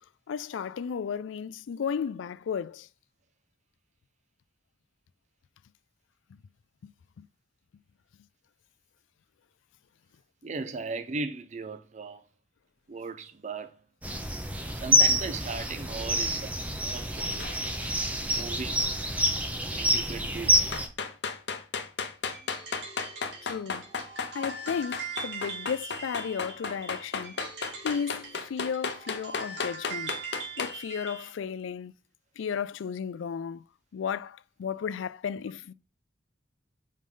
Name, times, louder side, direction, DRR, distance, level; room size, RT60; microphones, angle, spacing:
voice 1, 0.3-2.9 23.4-23.9 24.3-27.4 27.8-30.2 30.6-31.9 32.4-33.6 33.9-35.7, left 7 dB, 85° left, 0.3 m, -34 dB
voice 2, 10.4-12.2 12.9-13.7 14.7-17.5 18.2-18.8 19.7-20.6, right 3 dB, 40° right, 0.5 m, -37 dB
sound 1, 14.0-20.9, equal, 10° right, 0.8 m, -27 dB
sound 2, 17.4-17.6 20.7-30.8, left 5 dB, 65° left, 0.8 m, -34 dB
sound 3, 22.3-31.4, right 4 dB, 70° right, 2.0 m, -41 dB
5.4 x 5.1 x 3.8 m
head